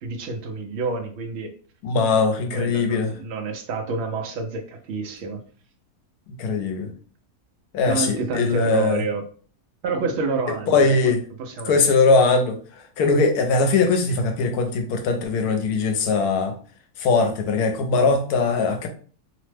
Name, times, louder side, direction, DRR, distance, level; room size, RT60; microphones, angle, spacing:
voice 1, 0.0-1.5 2.5-5.4 7.8-9.2 9.8-11.1 11.4-11.9, right 4 dB, 65° right, 4 dB, 0.7 m, -28 dB
voice 2, 1.8-3.1 6.4-6.9 7.7-9.0 10.7-11.2 11.7-12.6 13.0-16.5 17.0-18.9, left 4 dB, 80° left, 5 dB, 1.1 m, -20 dB
2.9 x 2.1 x 3.2 m, 0.43 s
omnidirectional pair, 1.7 m